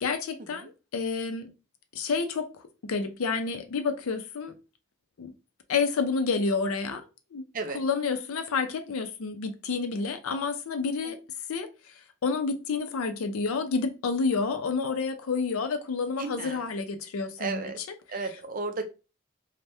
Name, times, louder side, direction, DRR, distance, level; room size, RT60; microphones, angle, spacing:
voice 1, 0.0-1.5 1.9-4.5 5.2-5.3 5.7-7.4 7.7-11.2 11.5-11.7 12.2-17.6, left 4 dB, 90° left, 0.5 m, -29 dB
voice 2, 16.2-16.6 17.4-17.8 18.1-18.8, right 3 dB, 40° right, 0.4 m, -34 dB
3.3 x 2.1 x 2.6 m
head